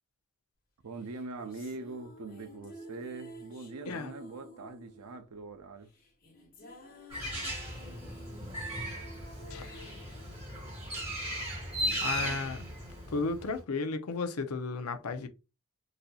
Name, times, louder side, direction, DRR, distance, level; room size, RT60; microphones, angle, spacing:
voice 1, 0.8-5.9 11.8-12.6, right 3 dB, 85° right, 0.6 m, -43 dB
sound 1, 1.0-11.4, equal, 40° left, 1.0 m, -51 dB
Bird, 7.1-13.6, equal, 25° right, 1.8 m, -37 dB
voice 2, 9.5-9.9 12.0-12.6 13.1-15.3, left 4 dB, 75° left, 0.6 m, -34 dB
4.0 x 2.6 x 2.3 m
head